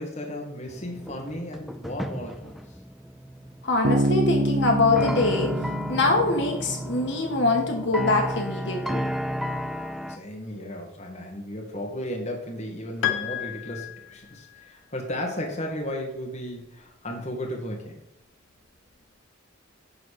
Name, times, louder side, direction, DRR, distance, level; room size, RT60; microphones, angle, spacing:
voice 1, 0.0-2.6 10.0-18.0, left 1 dB, 35° left, 0 dB, 1.6 m, -35 dB
sound 1, 0.7-10.2, equal, ahead, 0.4 m, -33 dB
voice 2, 3.6-5.6 5.9-9.1, left 2 dB, 55° left, 2 dB, 1.5 m, -24 dB
Bass guitar, 3.8-7.3, right 1 dB, 45° right, 0.6 m, -27 dB
Piano, 13.0-14.7, left 11 dB, 85° left, 0.9 m, -31 dB
10.5 x 4.1 x 6.5 m, 0.79 s
head